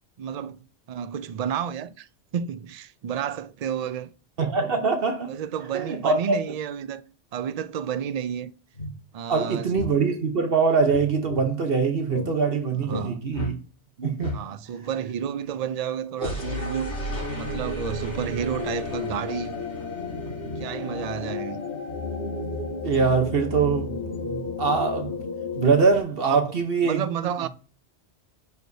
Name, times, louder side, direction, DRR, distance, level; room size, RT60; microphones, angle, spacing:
voice 1, 0.2-2.1 2.3-4.1 5.3-7.0 7.3-8.5 9.1-9.7 12.8-13.3 14.3-16.9 17.4-19.6 20.6-21.6 26.2-26.4 26.8-27.5, right 8 dB, 75° right, 0.3 m, -31 dB
voice 2, 4.4-5.3 5.7-6.4 9.3-13.6 14.0-14.4 22.8-24.0 24.2-25.2 25.6-27.0, right 5 dB, 55° right, 1.1 m, -23 dB
sound 1, 8.3-8.4 8.7-8.9 9.7-9.9 10.9-11.4 12.1-12.3 12.9-13.1 13.3-13.5 14.2-14.4 16.2-26.0, left 3 dB, 80° left, 3.2 m, -32 dB
10.5 x 4.7 x 2.7 m
omnidirectional pair, 1.2 m